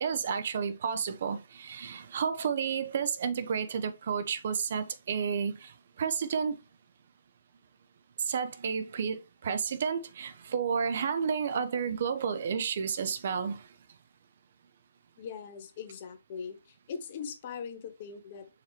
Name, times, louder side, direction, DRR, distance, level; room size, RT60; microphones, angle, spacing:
voice 1, 0.0-6.6 8.3-13.7, right 6 dB, 55° right, 0.7 m, -31 dB
voice 2, 15.2-18.5, left 6 dB, 45° left, 0.9 m, -41 dB
4.9 x 3.0 x 3.1 m
figure-of-eight pair, 135°, 0 cm